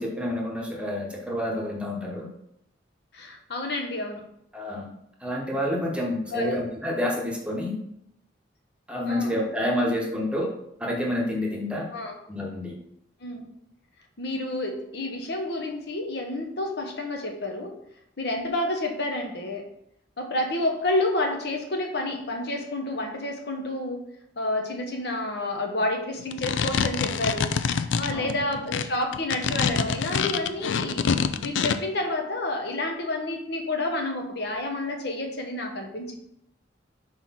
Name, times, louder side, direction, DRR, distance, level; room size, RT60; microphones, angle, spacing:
voice 1, 0.0-2.3 4.5-4.9 5.2-7.8 8.9-10.5 10.8-11.9 12.3-12.8 28.1-28.3, left 1 dB, 5° right, -1 dB, 1.0 m, -28 dB
voice 2, 3.1-4.2 6.3-6.6 9.0-9.4 11.9-12.2 13.2-13.5 14.2-17.8 18.2-19.6 20.2-24.0 24.4-27.5 28.0-31.1 31.4-36.1, left 1 dB, 65° left, 3 dB, 1.0 m, -29 dB
sound 1, 26.2-31.8, left 6 dB, 90° left, 0.4 m, -26 dB
4.6 x 4.1 x 5.6 m, 0.76 s
head